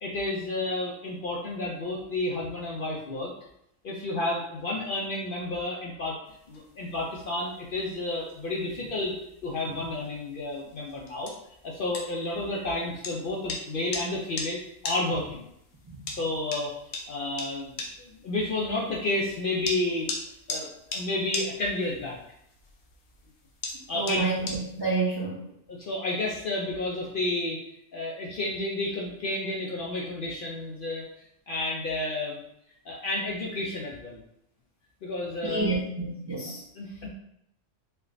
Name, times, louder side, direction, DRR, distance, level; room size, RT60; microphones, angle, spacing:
voice 1, 0.0-3.3 3.8-6.2 6.5-9.2 9.4-11.3 11.6-15.4 16.2-16.7 17.1-17.7 18.1-20.1 20.5-22.2 23.9-24.3 25.7-27.6 27.9-32.4 32.9-34.2 35.0-35.8 36.7-37.1, left 2 dB, 60° left, -2 dB, 0.6 m, -31 dB
sound 1, 6.3-24.9, left 3 dB, 85° left, 1.0 m, -41 dB
voice 2, 23.9-25.4 35.4-36.6, right 3 dB, 35° right, -6 dB, 0.4 m, -29 dB
4.4 x 2.2 x 2.5 m, 0.78 s
omnidirectional pair, 1.3 m